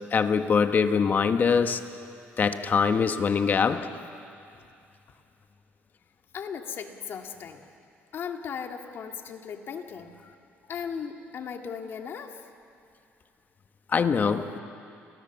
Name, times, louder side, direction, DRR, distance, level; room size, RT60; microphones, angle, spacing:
voice 1, 0.0-1.8 2.4-3.9 13.9-14.6, left 6 dB, 40° left, 8 dB, 1.3 m, -23 dB
voice 2, 6.3-7.6 8.1-10.1 10.7-12.4, left 7 dB, 55° left, 4 dB, 2.1 m, -37 dB
29.0 x 19.5 x 7.3 m, 2.6 s
cardioid pair, 105°, 5 cm